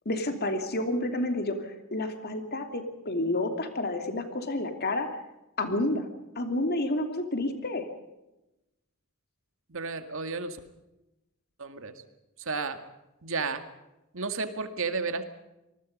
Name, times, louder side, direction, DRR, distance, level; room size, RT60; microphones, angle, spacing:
voice 1, 0.0-5.1 5.6-6.1 6.4-7.8, left 1 dB, 50° left, 7 dB, 2.9 m, -30 dB
voice 2, 9.7-10.6 11.6-11.9 12.5-12.8 13.2-13.6 14.1-15.2, right 4 dB, 65° right, 9 dB, 2.1 m, -32 dB
27.0 x 20.0 x 5.4 m, 0.95 s
head